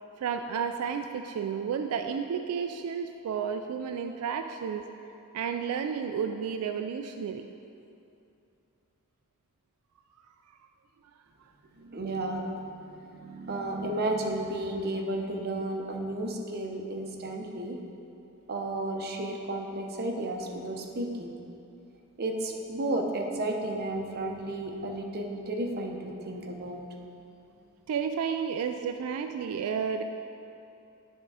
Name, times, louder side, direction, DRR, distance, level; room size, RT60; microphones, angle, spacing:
voice 1, 0.2-4.9 5.3-7.5 27.9-30.0, right 7 dB, 85° right, 6 dB, 0.3 m, -32 dB
voice 2, 11.8-17.8 18.5-21.3 22.2-26.8, right 1 dB, 45° right, 1 dB, 0.7 m, -33 dB
10.0 x 3.6 x 4.8 m, 2.8 s
head